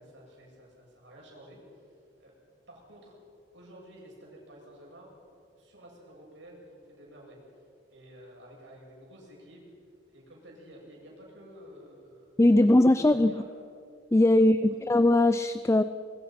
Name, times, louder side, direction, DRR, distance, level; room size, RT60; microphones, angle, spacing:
voice 1, 0.0-1.9 2.2-2.3 2.7-3.2 3.5-5.1 5.6-7.4 7.9-9.6 10.1-13.5 14.4-14.8, equal, 75° right, -2 dB, 8.0 m, -51 dB
voice 2, 12.4-13.3 14.1-15.8, left 1 dB, 15° left, 12 dB, 0.5 m, -20 dB
24.0 x 23.0 x 6.0 m, 2.4 s
head